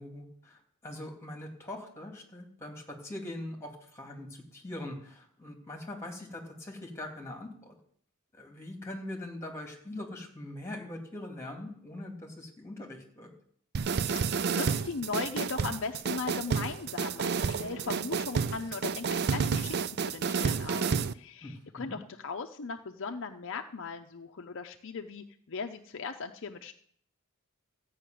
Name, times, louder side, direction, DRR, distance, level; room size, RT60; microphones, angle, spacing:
voice 1, 0.0-7.8 8.3-13.3 21.4-22.0, left 1 dB, 10° left, 1 dB, 2.8 m, -42 dB
sound 1, 13.7-21.1, right 5 dB, 50° right, 0.4 m, -30 dB
voice 2, 14.1-26.7, left 4 dB, 60° left, 5 dB, 0.6 m, -38 dB
14.5 x 5.8 x 9.3 m, 0.62 s
head